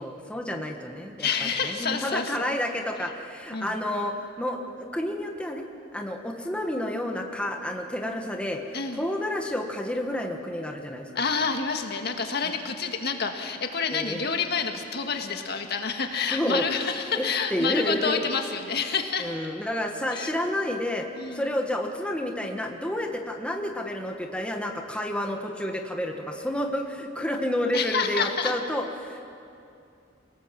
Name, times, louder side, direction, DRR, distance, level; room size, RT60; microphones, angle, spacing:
voice 1, 0.0-5.6 5.9-8.6 8.9-11.1 12.4-12.5 13.9-14.2 16.3-16.7 17.2-17.3 17.5-18.2 19.2-21.1 21.3-29.2, left 1 dB, 5° left, 2 dB, 1.4 m, -30 dB
voice 2, 1.2-2.5 3.5-3.7 8.7-9.0 11.2-19.3 20.1-20.3 21.2-21.5 27.7-28.5, left 5 dB, 55° left, 4 dB, 1.8 m, -28 dB
28.0 x 18.5 x 7.5 m, 2.6 s
head